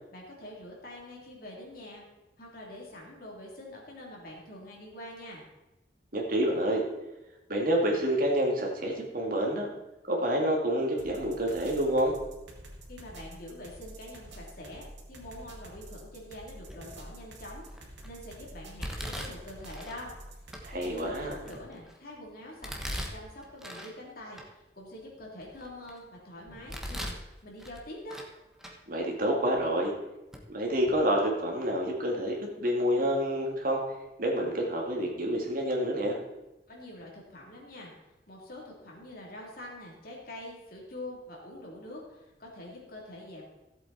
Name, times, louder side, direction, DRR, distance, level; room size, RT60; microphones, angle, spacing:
voice 1, 0.1-2.0 2.4-5.4 12.9-20.2 20.7-28.2 36.7-37.9 38.3-43.4, left 1 dB, 55° left, -2 dB, 3.2 m, -45 dB
voice 2, 6.1-6.8 7.5-9.7 10.1-12.1 20.6-21.3 28.9-29.9 30.5-33.8 34.2-36.2, equal, 50° right, 0 dB, 2.3 m, -28 dB
sound 1, 11.0-21.6, right 1 dB, 85° right, 2.4 m, -48 dB
Domestic sounds home sounds, 16.7-17.1 17.6-18.1 18.8-20.0 20.5-20.6 21.2-22.0 22.6-23.9 24.3-24.4 25.0-26.0 26.5-27.2 27.6-28.3 28.6-28.7 29.6-29.7 30.3-30.4 30.8-31.0, equal, 5° right, 1.2 m, -40 dB
14.5 x 7.9 x 4.3 m, 0.98 s
head